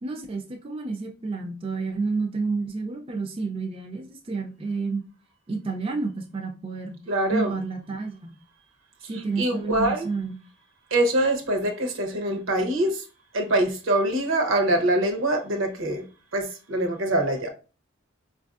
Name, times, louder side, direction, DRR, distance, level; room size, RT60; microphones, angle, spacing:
voice 1, 0.0-5.0 5.5-7.0 7.3-8.4 9.0-10.4, right 4 dB, 25° right, 0.3 m, -30 dB
voice 2, 7.1-7.6 9.4-10.1 10.9-13.0 13.3-16.1 16.3-17.5, right 1 dB, 75° right, 0.8 m, -24 dB
4.5 x 2.5 x 2.3 m
head